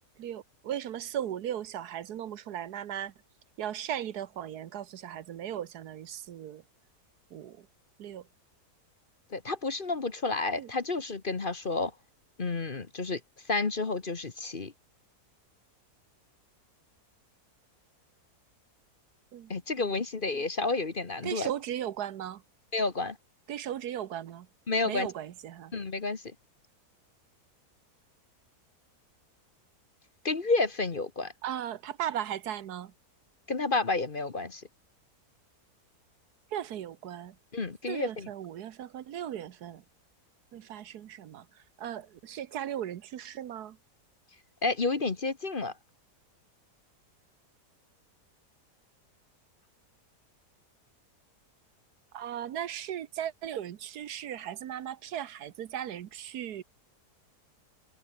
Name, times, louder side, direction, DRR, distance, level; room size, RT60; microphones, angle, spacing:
voice 1, 0.2-3.1 3.6-6.6 7.3-7.7 8.0-8.2 10.6-10.7 19.3-19.5 19.8-19.9 21.2-22.4 23.5-24.5 24.9-25.7 31.4-32.9 36.5-37.3 37.9-39.8 40.5-41.4 41.8-43.8 52.1-56.6, right 10 dB, 75° right, 1.4 m, -37 dB
voice 2, 9.3-11.9 12.4-13.2 13.5-14.7 19.5-21.5 22.7-23.2 24.7-25.1 25.7-26.2 30.2-31.3 33.5-34.7 37.5-38.3 44.6-45.7, left 3 dB, 35° left, 1.4 m, -30 dB
omnidirectional pair, 1.7 m